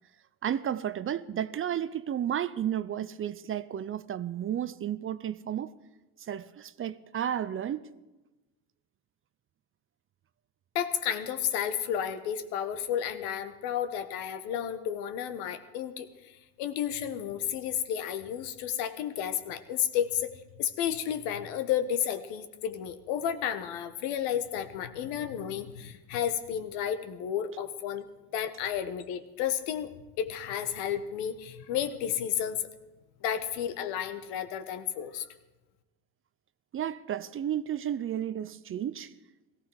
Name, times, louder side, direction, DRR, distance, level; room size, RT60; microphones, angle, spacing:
voice 1, 0.4-5.7 6.2-7.9 36.7-39.1, right 10 dB, 30° right, 0.5 m, -32 dB
voice 2, 10.7-28.0 28.3-32.7 33.2-35.3, left 9 dB, 80° left, 1.4 m, -32 dB
17.5 x 15.5 x 4.8 m
supercardioid pair, 95°, 40 cm